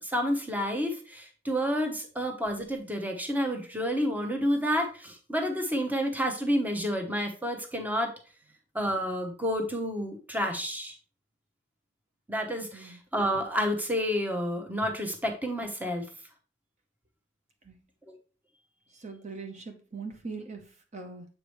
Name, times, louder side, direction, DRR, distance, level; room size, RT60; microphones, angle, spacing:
voice 1, 0.0-8.1 8.7-10.9 12.3-16.0 18.1-18.2, equal, 10° right, 3 dB, 1.0 m, -30 dB
voice 2, 18.9-21.3, right 4 dB, 40° right, 4 dB, 0.8 m, -41 dB
7.4 x 4.9 x 3.1 m, 0.35 s
head